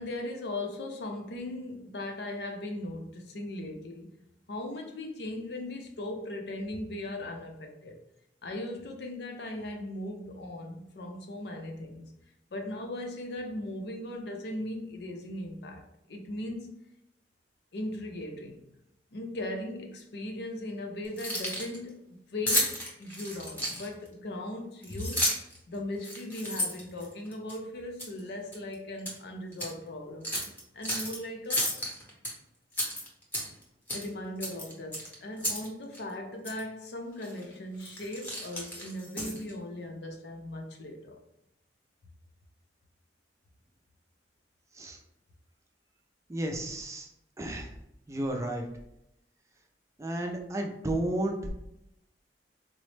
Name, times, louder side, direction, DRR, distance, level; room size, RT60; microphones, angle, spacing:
voice 1, 0.0-4.1 4.5-8.0 8.4-12.1 12.5-15.8 16.1-16.8 17.7-18.6 19.1-25.2 25.7-30.3 30.7-31.8 33.9-41.2, left 1 dB, 65° left, 3 dB, 0.5 m, -38 dB
Keys jangling, 21.0-21.8 22.5-24.1 24.8-25.6 26.0-27.5 28.0-28.2 28.5-29.2 29.5-29.7 30.2-31.2 31.5-32.3 32.7-33.6 33.9-34.1 34.4-35.7 35.9-36.0 36.4-36.6 37.2-37.4 37.8-39.5, equal, 10° left, 0.8 m, -32 dB
voice 2, 46.3-47.1 47.4-47.7 48.1-48.7 50.0-51.5, right 1 dB, 15° right, 2 dB, 0.4 m, -32 dB
3.9 x 2.0 x 3.2 m, 0.81 s
head